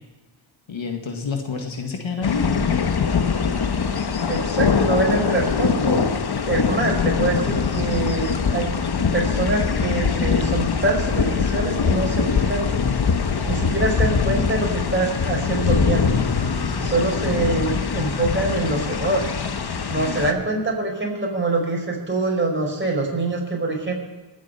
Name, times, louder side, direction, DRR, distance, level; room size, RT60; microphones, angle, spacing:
voice 1, 0.7-2.5 20.0-20.3, left 5 dB, 65° left, 4 dB, 2.0 m, -28 dB
sound 1, 2.2-20.3, left 5 dB, 50° left, 1.3 m, -22 dB
voice 2, 4.3-6.1 6.4-8.7 9.1-12.7 13.5-16.1 16.8-19.3 19.9-23.9, right 2 dB, 25° right, -1 dB, 5.1 m, -24 dB
20.0 x 8.2 x 5.8 m, 1.2 s
cardioid pair, 50°, 50 cm